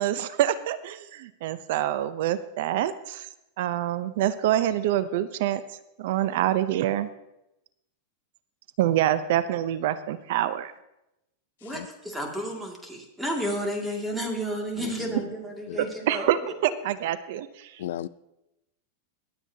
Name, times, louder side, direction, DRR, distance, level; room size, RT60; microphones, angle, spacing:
voice 1, 0.0-3.3 3.6-5.6 6.0-7.1 8.8-10.7 15.8-17.7, right 12 dB, 65° right, 0.6 m, -26 dB
voice 2, 11.6-16.3, equal, 5° right, 2.2 m, -32 dB
voice 3, 14.8-15.3 15.7-15.8 17.8-18.1, left 12 dB, 75° left, 0.4 m, -36 dB
23.5 x 8.0 x 2.8 m
supercardioid pair, 130°, 0 cm